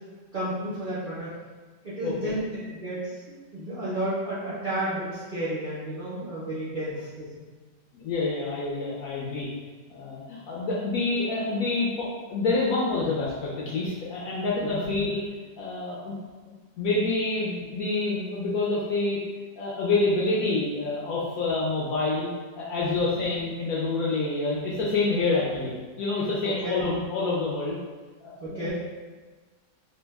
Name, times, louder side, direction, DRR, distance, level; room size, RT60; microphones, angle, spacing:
voice 1, 0.3-1.3 1.8-2.4 2.8-7.3 14.6-14.9 22.9-23.0 26.4-26.8 28.4-28.7, right 1 dB, 75° right, -10 dB, 0.4 m, -32 dB
voice 2, 7.9-9.5 9.9-15.2 15.6-16.1 16.8-19.2 19.6-22.3 22.6-25.7 26.0-27.8 28.2-28.7, left 3 dB, 70° left, -5 dB, 0.9 m, -27 dB
3.3 x 2.0 x 3.3 m, 1.4 s
omnidirectional pair, 1.9 m